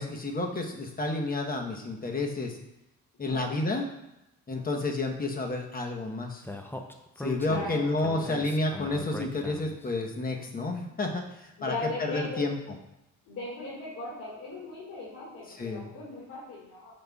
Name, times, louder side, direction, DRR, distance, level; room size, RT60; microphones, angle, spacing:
voice 1, 0.0-2.6 3.2-3.9 4.5-6.4 7.2-11.7 12.0-12.6 15.6-15.9, left 2 dB, 30° left, 2 dB, 1.0 m, -30 dB
Speech, 6.4-9.8, left 2 dB, 5° left, 0.6 m, -39 dB
voice 2, 7.5-8.4 11.6-12.5 13.3-16.9, left 3 dB, 80° left, -8 dB, 2.0 m, -38 dB
8.0 x 5.1 x 2.4 m, 0.90 s
cardioid pair, 90°, 30 cm